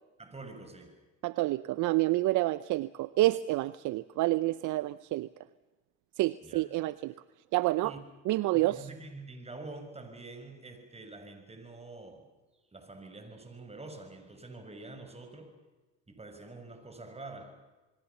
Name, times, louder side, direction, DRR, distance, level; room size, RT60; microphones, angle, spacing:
voice 1, 0.2-1.0 6.4-6.7 7.8-8.0 8.5-12.3 12.7-15.6 16.1-17.6, right 2 dB, 15° right, 7 dB, 6.4 m, -46 dB
voice 2, 1.2-5.3 6.2-7.1 7.5-7.9 8.3-8.8, right 17 dB, 60° right, 16 dB, 0.8 m, -28 dB
28.0 x 22.0 x 7.1 m, 1.2 s
hypercardioid pair, 75°, 35 cm